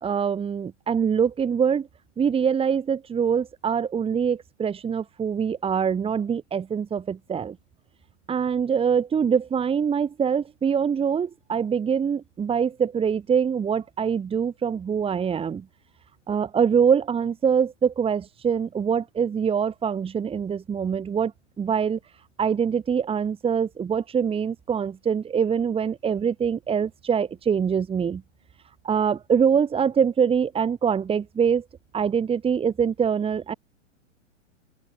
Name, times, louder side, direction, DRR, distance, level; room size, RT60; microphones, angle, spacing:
voice 1, 0.0-1.9 2.2-7.6 8.3-15.6 16.3-21.3 21.6-22.0 22.4-28.2 28.8-31.6 31.9-33.5, right 7 dB, 15° right, 3.7 m, -24 dB
open air
hypercardioid pair, 135°, 37 cm